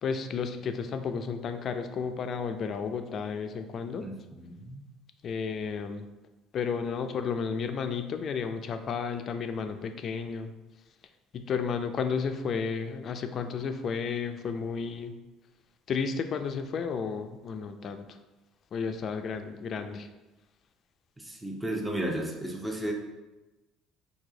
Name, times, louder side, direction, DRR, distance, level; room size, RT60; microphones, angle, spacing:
voice 1, 0.0-4.1 5.2-6.1 6.5-10.5 11.3-15.1 15.9-18.0 18.7-20.1, left 6 dB, 50° left, 7 dB, 0.4 m, -32 dB
voice 2, 4.0-4.8 21.2-22.9, right 1 dB, 10° right, 0 dB, 0.7 m, -34 dB
4.6 x 2.7 x 3.8 m, 1.1 s
supercardioid pair, 80°, 0 cm